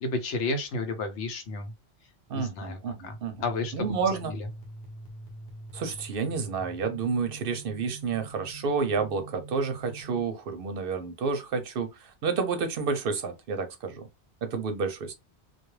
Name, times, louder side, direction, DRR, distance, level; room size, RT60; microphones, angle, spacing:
voice 1, 0.0-1.7 2.3-3.9 4.4-4.5, left 3 dB, 85° left, 1.0 m, -32 dB
voice 2, 2.3-3.4 3.7-4.3 5.7-14.1 14.4-15.1, right 5 dB, 60° right, 0.7 m, -30 dB
sound 1, 3.4-10.2, right 1 dB, 65° left, 0.9 m, -45 dB
2.3 x 2.2 x 3.1 m
omnidirectional pair, 1.1 m